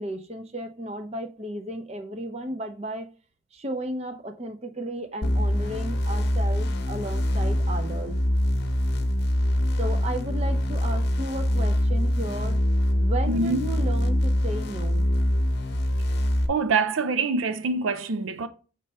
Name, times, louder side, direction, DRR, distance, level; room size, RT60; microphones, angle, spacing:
voice 1, 0.0-3.1 3.5-8.2 9.8-12.6 13.0-15.1, right 1 dB, 30° right, 0.7 m, -34 dB
sound 1, 5.2-16.5, equal, 55° left, 0.8 m, -24 dB
voice 2, 13.3-13.6 16.5-18.5, right 4 dB, 85° right, 0.5 m, -25 dB
6.7 x 3.2 x 5.4 m
head